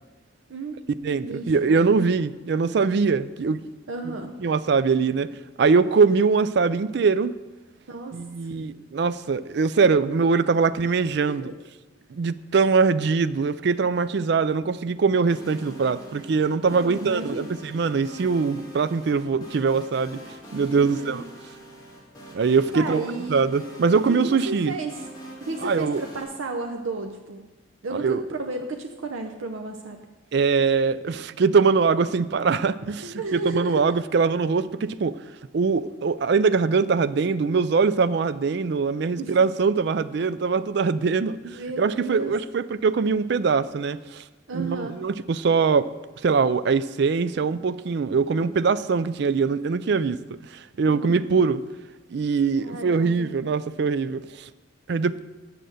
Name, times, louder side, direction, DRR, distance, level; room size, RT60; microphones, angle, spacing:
voice 1, 0.5-2.0 3.9-4.3 7.9-8.2 11.2-11.5 16.7-17.5 20.7-21.3 22.7-23.5 23.8-25.0 25.4-27.5 27.8-30.0 33.0-33.8 39.2-39.4 41.5-42.3 44.5-44.9 50.8-51.5 52.6-53.3, right 3 dB, 80° right, 0.7 m, -33 dB
voice 2, 1.0-3.6 4.0-5.3 5.6-7.4 8.1-11.4 12.1-20.2 20.5-21.2 22.3-23.0 23.3-24.7 25.6-26.0 28.0-28.2 30.3-35.2 35.5-44.2 44.5-45.9 46.2-50.2 50.5-51.6 52.1-54.5 54.9-55.2, right 5 dB, 55° right, 0.4 m, -22 dB
sound 1, 15.3-26.2, right 1 dB, 20° left, 1.9 m, -44 dB
7.8 x 7.5 x 6.6 m
head